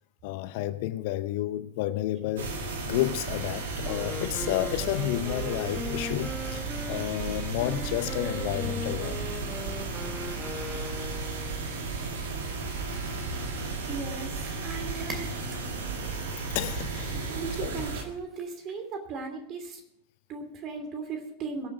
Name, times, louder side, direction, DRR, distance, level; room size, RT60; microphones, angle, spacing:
voice 1, 0.2-2.6 2.8-9.2 12.7-13.2 16.0-16.2 16.5-17.2 17.6-17.8, left 14 dB, 50° left, 0.6 m, -31 dB
sound 1, 2.4-18.0, right 4 dB, 60° right, 2.0 m, -34 dB
Wind instrument woodwind instrument, 3.8-11.7, left 2 dB, ahead, 1.4 m, -39 dB
Cat, 13.8-19.0, right 2 dB, 15° right, 2.5 m, -48 dB
voice 2, 13.9-15.3 17.1-19.8 20.3-21.7, right 4 dB, 35° right, 2.9 m, -37 dB
21.5 x 7.3 x 4.9 m
figure-of-eight pair, 90°, 0 cm